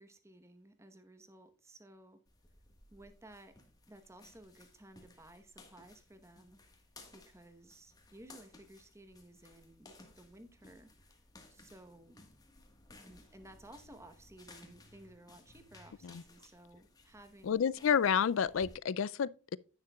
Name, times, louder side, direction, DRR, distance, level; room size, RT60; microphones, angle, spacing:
voice 1, 0.0-2.2 2.9-3.5 3.9-6.6 7.1-11.1 11.5-12.2 12.9-17.7, right 1 dB, 15° right, 1.0 m, -56 dB
sound 1, 2.3-18.8, left 2 dB, 20° left, 1.4 m, -59 dB
voice 2, 17.4-19.6, left 7 dB, 60° left, 0.4 m, -30 dB
10.0 x 9.7 x 2.3 m
head